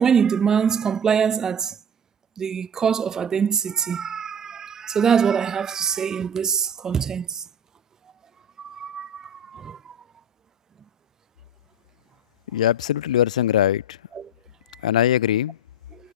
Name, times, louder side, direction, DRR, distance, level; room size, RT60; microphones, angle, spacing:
voice 1, 0.0-1.7 2.4-7.4 8.6-9.8 14.2-14.3, right 7 dB, 15° right, 0.4 m, -23 dB
voice 2, 12.5-14.0 14.8-15.6, left 11 dB, 50° left, 1.7 m, -21 dB
figure-of-eight pair, 115°, 5 cm